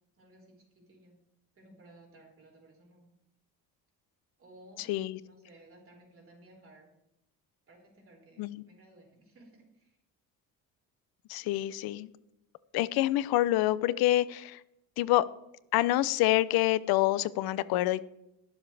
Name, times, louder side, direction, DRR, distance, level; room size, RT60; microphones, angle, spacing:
voice 1, 0.1-1.2 1.5-3.1 4.4-4.9 5.2-6.9 7.7-10.0, right 1 dB, 35° right, -1 dB, 4.6 m, -57 dB
voice 2, 4.9-5.2 8.4-8.6 11.3-12.1 12.7-14.6 15.0-15.3 15.7-18.0, left 16 dB, 85° left, 17 dB, 0.7 m, -27 dB
21.5 x 7.3 x 3.4 m, 0.86 s
cardioid pair, 120°, 36 cm